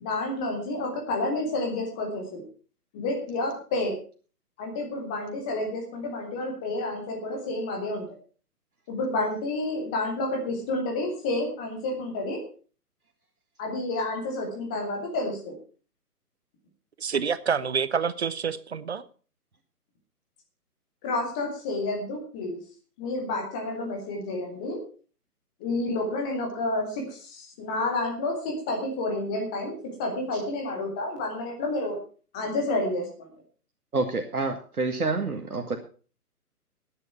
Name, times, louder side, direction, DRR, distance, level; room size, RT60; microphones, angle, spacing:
voice 1, 0.0-2.4 2.9-3.9 4.6-8.1 8.9-12.4 13.6-15.5 21.0-22.6 23.0-24.8 25.6-32.0 32.3-33.1, left 2 dB, 5° left, 1 dB, 0.6 m, -30 dB
voice 2, 17.0-19.0, right 6 dB, 45° right, 16 dB, 0.8 m, -27 dB
voice 3, 33.9-35.8, right 3 dB, 70° right, 5 dB, 1.7 m, -28 dB
12.0 x 9.8 x 5.6 m, 0.39 s
figure-of-eight pair, 135°, 46 cm